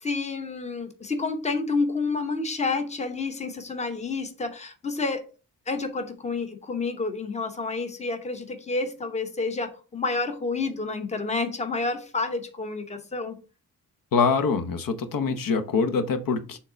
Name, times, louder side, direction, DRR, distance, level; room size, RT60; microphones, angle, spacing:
voice 1, 0.0-5.2 5.7-13.4, left 3 dB, 20° left, 7 dB, 0.9 m, -29 dB
voice 2, 14.1-16.6, left 5 dB, 80° left, 10 dB, 0.9 m, -24 dB
6.7 x 3.7 x 5.0 m, 0.34 s
wide cardioid pair, 165°, 33 cm